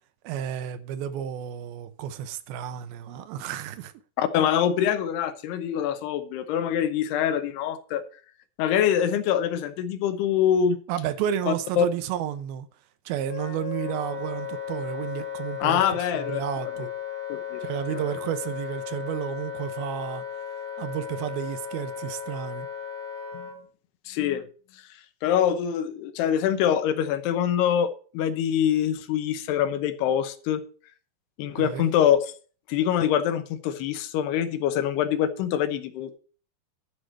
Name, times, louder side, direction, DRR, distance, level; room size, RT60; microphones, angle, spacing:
voice 1, 0.2-3.9 10.9-12.7 13.1-15.8 16.1-16.9 17.6-20.2 20.8-22.7 31.6-31.9, right 10 dB, 75° right, 2.3 m, -31 dB
voice 2, 4.2-8.0 8.6-10.8 11.5-11.9 15.6-16.4 17.3-17.6 17.9-18.0 23.3-23.5 24.1-24.4 25.2-30.6 31.4-32.3 32.7-36.2, left 9 dB, 75° left, 2.9 m, -24 dB
Wind instrument woodwind instrument, 13.3-23.6, left 8 dB, 35° left, 2.5 m, -35 dB
12.0 x 4.8 x 7.4 m
omnidirectional pair, 4.9 m